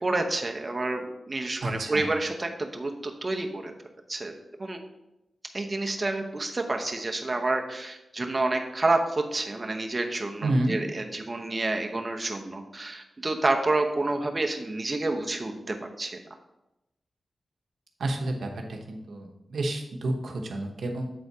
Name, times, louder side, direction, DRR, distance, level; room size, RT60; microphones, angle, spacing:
voice 1, 0.0-3.7 4.1-4.3 4.6-4.8 5.5-16.1, right 2 dB, 30° right, 3 dB, 0.8 m, -29 dB
voice 2, 1.6-2.1 10.4-10.8 18.0-21.0, right 1 dB, 85° right, 2 dB, 1.0 m, -30 dB
7.8 x 4.1 x 4.7 m, 0.91 s
wide cardioid pair, 95°, 0 cm